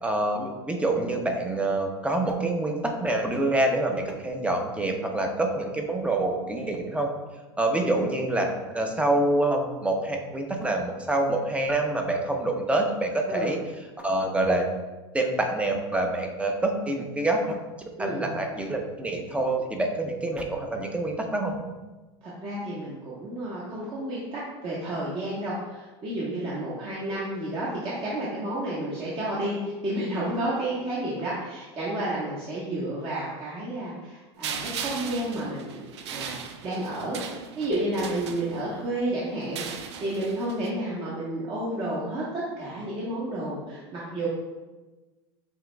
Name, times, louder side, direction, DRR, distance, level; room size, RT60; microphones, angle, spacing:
voice 1, 0.0-7.1 7.6-13.6 14.0-14.6 15.1-17.6 18.0-21.6, right 2 dB, 10° right, 3 dB, 0.7 m, -26 dB
voice 2, 18.0-18.3 22.2-29.6 29.8-36.4 36.6-44.3, right 1 dB, 40° right, -8 dB, 1.3 m, -31 dB
sound 1, 34.4-38.9 39.4-40.7, right 7 dB, 85° right, 0.5 m, -38 dB
7.3 x 3.0 x 2.2 m, 1.2 s
hypercardioid pair, 100°, 14 cm